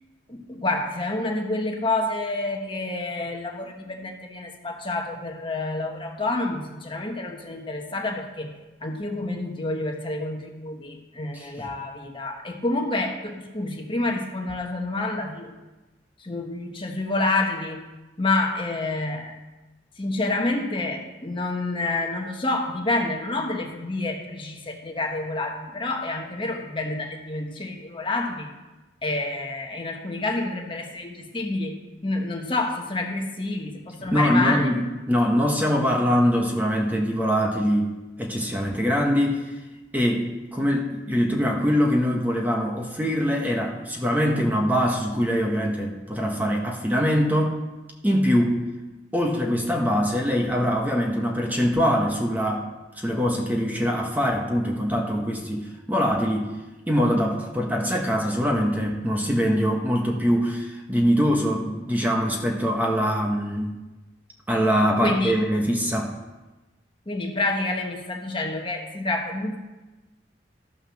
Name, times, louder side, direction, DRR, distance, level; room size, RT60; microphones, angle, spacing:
voice 1, 0.3-8.5 8.8-15.5 16.2-17.8 18.2-19.3 20.0-28.5 29.0-34.7 65.0-65.4 67.1-69.6, left 2 dB, 30° left, 2 dB, 1.2 m, -28 dB
voice 2, 11.3-11.7 34.0-39.5 39.9-47.6 48.0-48.6 49.1-52.7 53.0-56.5 56.9-63.8 64.5-66.1, equal, 10° right, 1 dB, 1.0 m, -23 dB
13.5 x 6.3 x 6.4 m, 1.1 s
head